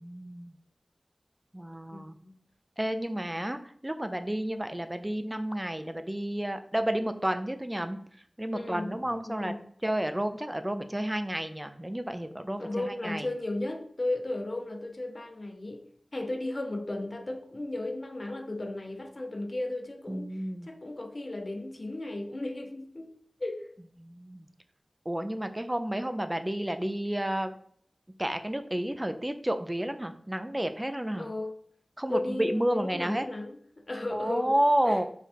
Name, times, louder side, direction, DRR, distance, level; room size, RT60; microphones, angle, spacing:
voice 1, 0.0-0.5 1.5-2.2 2.8-8.0 8.4-9.5 9.8-13.3 20.1-20.7 24.0-24.5 25.1-27.6 28.2-31.3 32.0-33.3 34.1-35.0, right 1 dB, 15° right, 0.4 m, -31 dB
voice 2, 1.9-2.4 8.5-9.6 12.6-23.1 23.4-23.7 31.2-31.6 32.1-35.0, left 2 dB, 50° left, 0.5 m, -35 dB
3.4 x 2.4 x 4.2 m
wide cardioid pair, 55°, 0 cm